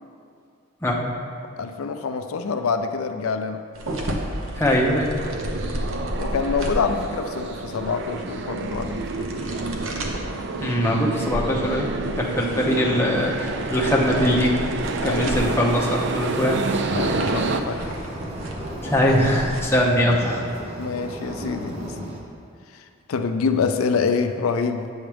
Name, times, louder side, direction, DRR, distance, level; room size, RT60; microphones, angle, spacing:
voice 1, 1.6-3.6 6.2-9.6 15.0-15.6 16.9-17.9 20.8-22.1 22.7-24.9, left 5 dB, 80° left, 7 dB, 0.4 m, -26 dB
sound 1, 3.7-19.6, equal, 80° right, 0.9 m, -34 dB
sound 2, 4.1-17.6, right 3 dB, 55° right, 0.4 m, -29 dB
voice 2, 4.5-5.1 10.6-11.9 12.2-14.6 15.0-16.6 18.8-20.4, equal, 10° left, -3 dB, 0.8 m, -21 dB
sound 3, 16.9-22.2, right 1 dB, 30° right, 0.9 m, -33 dB
8.7 x 7.1 x 3.4 m, 2.3 s
head